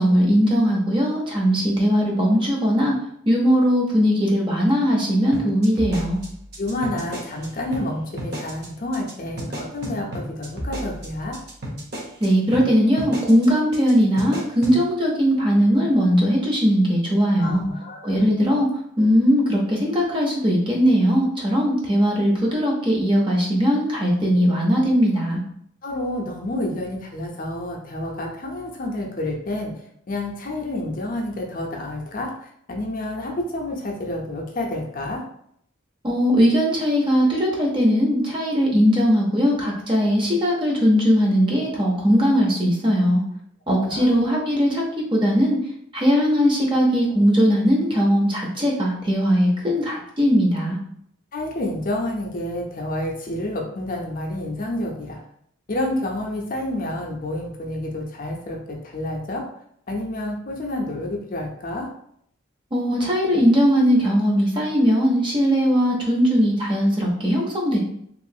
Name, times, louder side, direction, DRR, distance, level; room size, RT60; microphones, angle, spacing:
voice 1, 0.0-2.9 3.3-6.2 12.2-17.7 18.0-18.7 19.0-25.4 36.0-43.2 43.7-44.8 45.1-45.6 45.9-50.8 62.7-67.8, equal, 25° right, -1 dB, 0.6 m, -19 dB
sound 1, 5.3-7.5 7.7-7.9 8.2-8.7 8.9-9.1 9.4-12.3 12.5-12.7 13.0-13.5 13.7-13.9 14.2-14.8, equal, 50° right, 0.8 m, -32 dB
voice 2, 6.6-11.4 17.4-18.3 25.8-29.7 30.1-35.2 43.9-44.2 51.3-55.2 55.7-59.4 59.9-61.9, left 1 dB, 40° left, 0 dB, 0.5 m, -29 dB
3.0 x 2.4 x 2.6 m, 0.69 s
head